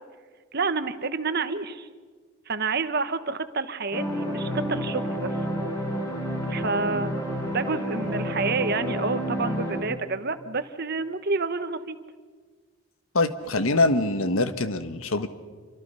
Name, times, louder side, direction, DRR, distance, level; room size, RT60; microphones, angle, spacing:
voice 1, 0.5-1.9 2.5-5.3 6.5-12.0, right 4 dB, 45° right, 10 dB, 1.2 m, -29 dB
sound 1, 3.9-9.8, equal, 15° left, 7.4 m, -29 dB
voice 2, 13.1-15.3, left 2 dB, 75° left, 10 dB, 1.4 m, -24 dB
27.5 x 25.5 x 5.7 m, 1.5 s
head